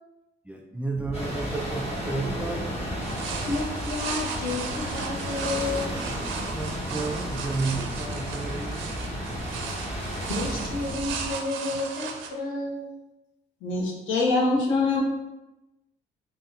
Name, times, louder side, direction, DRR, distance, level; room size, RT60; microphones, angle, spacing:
voice 1, 0.5-2.8 6.5-8.9 9.3-9.4, right 3 dB, 5° right, 1 dB, 0.3 m, -32 dB
sound 1, 0.9-11.3, equal, 15° left, 1.0 m, -35 dB
sound 2, 1.1-10.9, right 1 dB, 30° left, 1.5 m, -36 dB
sound 3, 3.0-12.3, right 5 dB, 80° right, 0.4 m, -36 dB
voice 2, 3.5-5.9 10.3-12.8, left 3 dB, 50° left, -2 dB, 1.0 m, -31 dB
voice 3, 13.6-15.0, left 3 dB, 80° left, -1 dB, 0.6 m, -23 dB
3.7 x 2.1 x 2.6 m, 0.98 s
cardioid pair, 90°, 20 cm